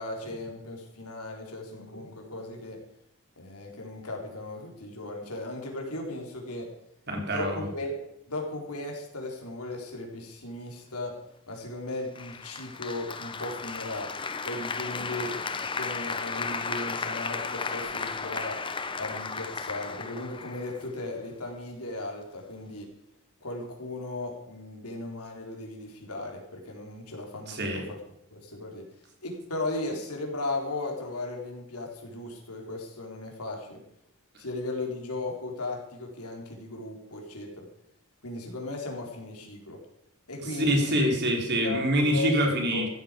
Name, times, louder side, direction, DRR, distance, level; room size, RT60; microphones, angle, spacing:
voice 1, 0.0-2.8 3.4-6.7 7.3-11.2 11.5-14.1 14.4-18.6 19.0-22.9 23.4-28.0 28.3-28.8 29.2-33.8 34.4-37.7 38.2-39.8 40.3-41.2 41.6-42.4 42.7-42.9, left 2 dB, 90° left, 1 dB, 4.1 m, -36 dB
voice 2, 7.1-7.7 27.5-27.8 40.6-42.9, equal, 50° right, 2 dB, 3.8 m, -25 dB
Applause, 12.2-21.2, left 4 dB, 25° left, 0.8 m, -34 dB
15.0 x 13.5 x 5.3 m, 0.77 s
head